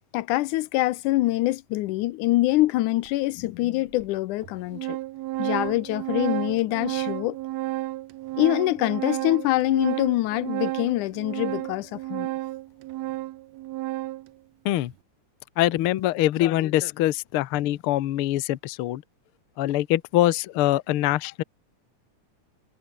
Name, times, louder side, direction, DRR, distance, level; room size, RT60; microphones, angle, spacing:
voice 1, 0.1-5.0 5.4-7.4 8.4-12.3, left 17 dB, 85° left, 2.2 m, -24 dB
Organ, 3.1-3.2 4.0-4.1 4.4-14.3, right 16 dB, 75° right, 1.8 m, -32 dB
voice 2, 15.6-19.0 19.6-21.4, left 14 dB, 70° left, 1.4 m, -23 dB
omnidirectional pair, 3.4 m